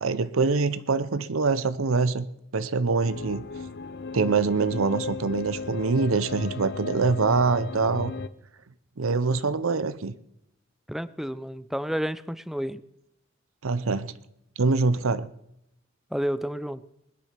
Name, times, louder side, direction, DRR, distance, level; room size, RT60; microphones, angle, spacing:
voice 1, 0.0-2.3 2.5-3.4 4.1-8.1 9.0-10.1 13.6-14.1 14.6-15.3, right 4 dB, 85° right, 15 dB, 0.7 m, -24 dB
sound 1, 3.0-8.3, left 4 dB, 55° left, 0.7 m, -36 dB
voice 2, 10.9-12.8 16.1-16.8, equal, ahead, 15 dB, 0.5 m, -30 dB
20.0 x 10.5 x 5.9 m, 0.81 s
head